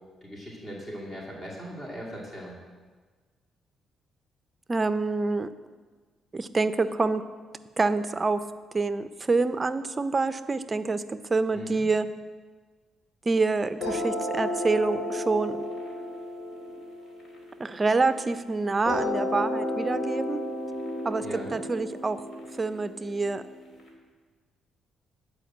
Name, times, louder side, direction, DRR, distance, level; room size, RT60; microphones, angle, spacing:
voice 1, 0.2-2.6 11.5-11.9 21.2-21.6, equal, 30° left, -4 dB, 2.4 m, -39 dB
voice 2, 4.7-5.5 6.3-7.2 7.8-8.4 8.7-12.1 13.3-15.6 17.6-20.4 21.0-22.2 22.6-23.4, right 3 dB, 25° right, 12 dB, 0.5 m, -27 dB
sound 1, 13.8-18.2 18.9-23.8, left 1 dB, 60° left, 2.2 m, -33 dB
9.8 x 5.1 x 7.2 m, 1.4 s
cardioid pair, 90°, 0 cm